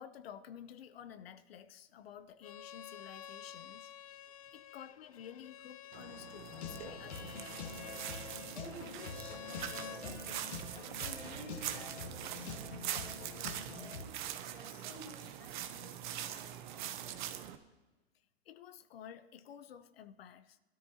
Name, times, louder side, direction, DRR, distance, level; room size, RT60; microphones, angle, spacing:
voice 1, 0.0-3.9 4.5-7.5 18.5-20.6, left 9 dB, 65° left, 13 dB, 0.8 m, -52 dB
Bowed string instrument, 2.4-10.0, left 11 dB, 35° left, 0.4 m, -50 dB
sound 1, 5.9-17.6, right 11 dB, 45° right, 0.9 m, -43 dB
sound 2, 6.5-14.0, left 5 dB, 80° left, 1.7 m, -46 dB
voice 2, 8.5-14.2 14.5-17.3, equal, 5° left, -4 dB, 3.0 m, -53 dB
20.0 x 13.0 x 2.8 m, 1.1 s
supercardioid pair, 165°, 33 cm